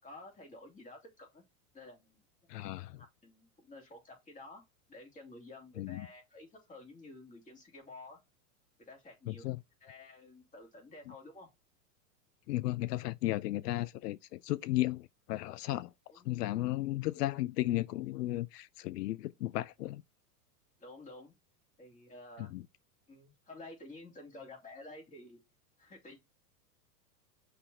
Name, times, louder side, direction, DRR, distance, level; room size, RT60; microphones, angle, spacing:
voice 1, 0.0-1.4 1.7-2.2 3.0-4.6 4.9-8.2 8.9-9.5 9.8-11.5 16.1-16.3 20.8-21.3 21.8-22.5 23.1-25.4 25.8-26.2, left 2 dB, 15° left, 3.1 m, -51 dB
voice 2, 2.5-3.0 5.8-6.1 9.3-9.6 12.5-15.9 16.2-20.0 22.4-22.6, left 16 dB, 90° left, 0.5 m, -34 dB
5.8 x 3.3 x 5.5 m
hypercardioid pair, 130°, 46 cm